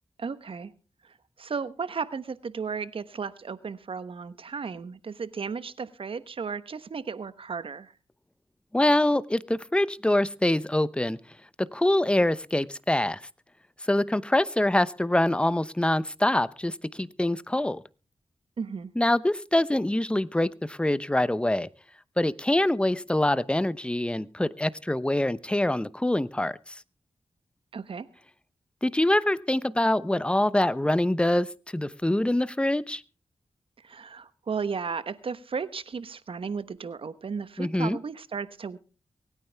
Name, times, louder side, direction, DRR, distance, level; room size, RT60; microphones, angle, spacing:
voice 1, 0.2-0.7 1.0-7.9 18.6-18.9 27.7-28.1 33.8-38.8, right 5 dB, 65° right, 14 dB, 1.1 m, -34 dB
voice 2, 8.7-11.2 11.6-13.2 13.9-17.8 19.0-21.7 22.2-26.7 28.8-31.5 31.7-33.0 37.6-38.0, left 1 dB, 10° left, 17 dB, 0.8 m, -25 dB
24.0 x 9.6 x 3.5 m, 0.35 s
cardioid pair, 40°, 10 cm